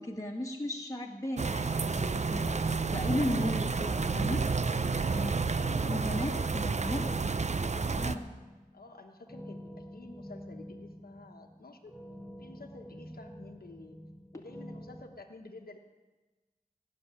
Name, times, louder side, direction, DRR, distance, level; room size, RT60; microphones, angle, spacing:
voice 1, 0.0-4.4 4.9-5.4 5.9-7.2 7.9-8.3, left 1 dB, 20° left, -1 dB, 1.9 m, -36 dB
sound 1, 1.4-8.2, right 4 dB, 50° right, 0.6 m, -30 dB
voice 2, 5.0-5.3 5.6-6.8 8.7-11.9 12.4-14.0 14.3-15.8, left 3 dB, 85° left, 3 dB, 1.2 m, -50 dB
sound 2, 6.8-15.0, equal, 5° right, 2.1 m, -47 dB
15.5 x 6.5 x 9.8 m, 1.2 s
wide cardioid pair, 45°, 15 cm